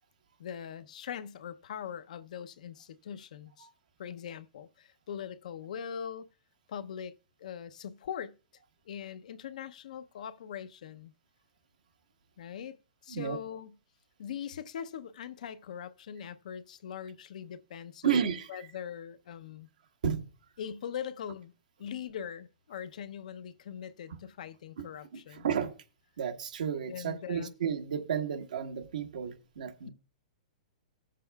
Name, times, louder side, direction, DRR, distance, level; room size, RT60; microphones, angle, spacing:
voice 1, 0.4-3.7 4.0-6.3 6.7-7.1 7.4-8.4 8.8-11.1 12.4-12.8 13.0-13.7 14.2-19.7 20.6-21.5 21.8-25.5 26.8-27.5, left 8 dB, 70° left, 0.6 m, -41 dB
voice 2, 18.0-18.5 20.0-20.3 24.8-24.9 25.1-25.7 26.2-29.9, right 7 dB, 80° right, 1.3 m, -32 dB
16.0 x 7.5 x 2.3 m
hypercardioid pair, 145°, 4 cm